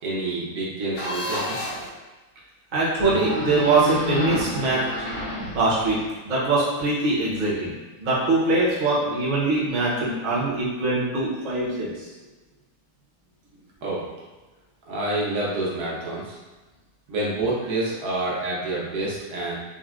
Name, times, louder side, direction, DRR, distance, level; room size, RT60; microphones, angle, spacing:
voice 1, 0.0-1.6 13.8-14.0 14.9-16.4 17.1-19.5, right 2 dB, 80° right, -6 dB, 1.3 m, -28 dB
sound 1, 0.9-1.9 3.0-6.1, left 2 dB, 70° left, 1.6 m, -30 dB
voice 2, 2.7-4.8 5.5-6.0 6.2-7.7 8.0-11.9, right 3 dB, 40° right, -7 dB, 0.7 m, -22 dB
3.9 x 2.1 x 2.4 m, 1.2 s
omnidirectional pair, 1.6 m